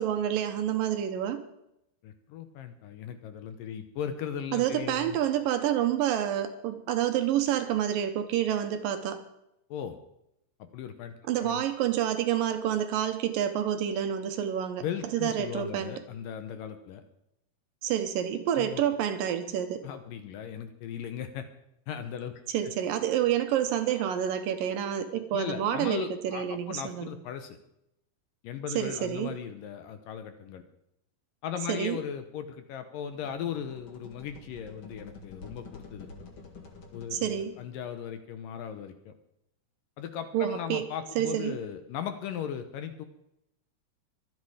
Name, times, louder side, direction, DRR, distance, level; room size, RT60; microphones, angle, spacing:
voice 1, 0.0-1.4 4.5-9.2 11.3-14.8 15.1-15.9 17.8-19.9 22.5-27.1 28.8-29.3 31.7-32.0 37.1-37.5 40.3-40.8 41.2-41.6, right 10 dB, 75° right, 8 dB, 2.4 m, -28 dB
voice 2, 2.0-5.2 9.7-10.0 10.6-11.6 14.8-17.0 18.5-18.8 19.8-21.5 21.9-22.4 25.3-27.6 28.4-30.6 31.4-36.1 36.9-39.1 40.0-43.1, left 8 dB, 70° left, 9 dB, 2.3 m, -37 dB
sound 1, 33.1-37.9, left 3 dB, 40° left, 1.9 m, -49 dB
24.0 x 8.7 x 4.9 m, 0.82 s
omnidirectional pair, 4.5 m